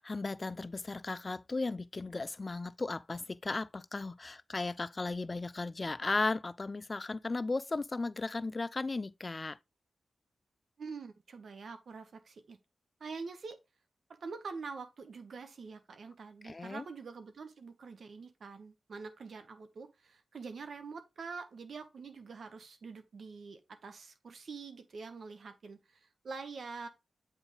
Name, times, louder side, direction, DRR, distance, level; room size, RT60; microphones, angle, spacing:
voice 1, 0.0-9.6 16.4-16.8, left 3 dB, 40° left, 0.3 m, -36 dB
voice 2, 10.8-12.6 13.0-13.6 14.2-26.9, right 4 dB, 70° right, 1.1 m, -45 dB
8.0 x 3.5 x 3.8 m
cardioid pair, 45°, 0 cm